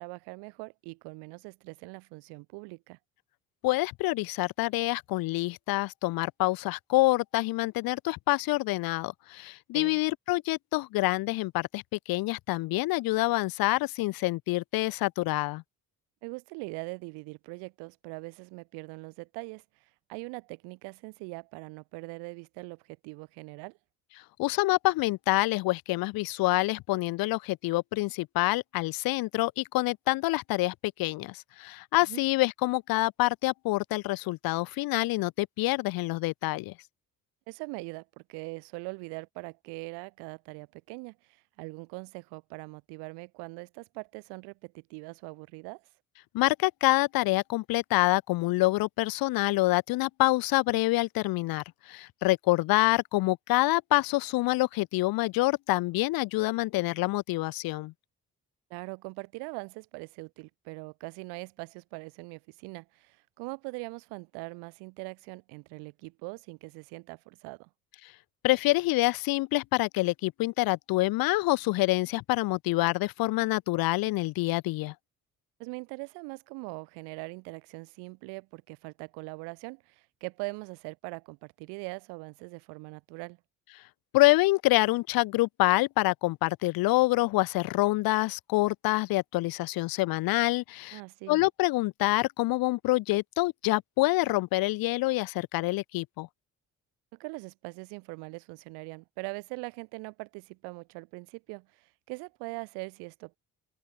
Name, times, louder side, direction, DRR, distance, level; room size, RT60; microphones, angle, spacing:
voice 1, 0.0-3.0 9.7-10.0 16.2-19.6 20.1-23.8 32.0-32.2 37.5-41.2 41.6-45.8 58.7-67.7 75.6-83.4 90.9-91.4 97.2-103.4, right 31 dB, 85° right, 3.7 m, -42 dB
voice 2, 3.6-11.8 12.1-15.6 24.4-36.7 46.3-57.9 68.4-74.9 84.1-91.0 91.3-96.3, left 20 dB, 65° left, 0.5 m, -26 dB
open air
hypercardioid pair, 55°, 39 cm